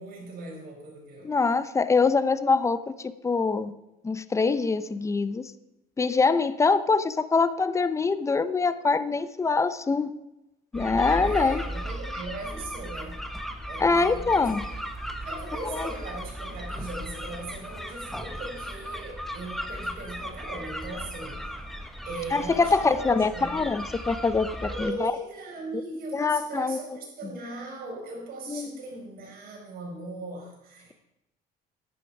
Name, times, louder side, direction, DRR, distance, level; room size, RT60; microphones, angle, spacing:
voice 1, 0.0-1.3 11.3-13.2 13.7-14.5 15.2-21.6 22.1-23.6 24.6-30.9, right 2 dB, 60° right, -2 dB, 5.1 m, -39 dB
voice 2, 1.2-3.7 4.0-5.5 6.0-10.1 10.7-11.6 13.8-14.6 15.6-15.9 22.3-25.1 26.1-27.3 28.5-28.7, left 4 dB, 15° left, 14 dB, 0.6 m, -24 dB
sound 1, 10.7-24.9, equal, ahead, 1.0 m, -36 dB
10.5 x 9.4 x 4.8 m, 0.93 s
cardioid pair, 110°, 17 cm